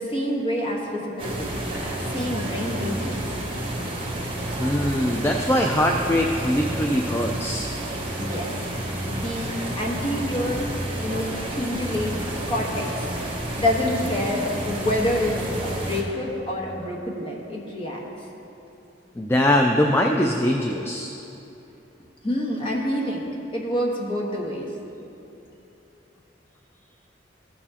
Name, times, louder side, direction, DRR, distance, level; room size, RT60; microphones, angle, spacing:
voice 1, 0.0-1.5 2.0-3.2 8.2-10.7 11.0-13.2 13.6-15.3 15.6-18.0 22.2-23.3 23.5-24.7, left 1 dB, 30° left, -2 dB, 1.3 m, -27 dB
sound 1, 1.2-16.0, right 1 dB, 30° right, 1.3 m, -30 dB
voice 2, 4.6-7.7 19.2-21.1, left 1 dB, 15° left, 1 dB, 0.4 m, -22 dB
14.5 x 6.8 x 2.9 m, 2.9 s
head